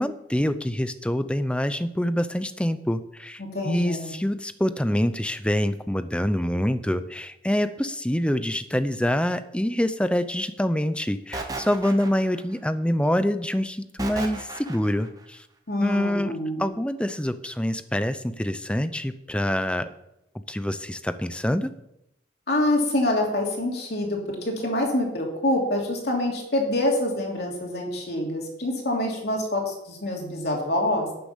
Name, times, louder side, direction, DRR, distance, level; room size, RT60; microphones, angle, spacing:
voice 1, 0.0-15.4 15.8-16.3 16.6-19.9 20.5-21.7, equal, 5° left, 11 dB, 0.6 m, -26 dB
voice 2, 3.4-4.1 15.7-16.7 22.5-31.1, left 1 dB, 60° left, 0 dB, 3.1 m, -26 dB
sound 1, 11.3-12.6 14.0-15.1, right 2 dB, 20° right, 1.3 m, -34 dB
11.5 x 6.9 x 7.2 m, 0.83 s
head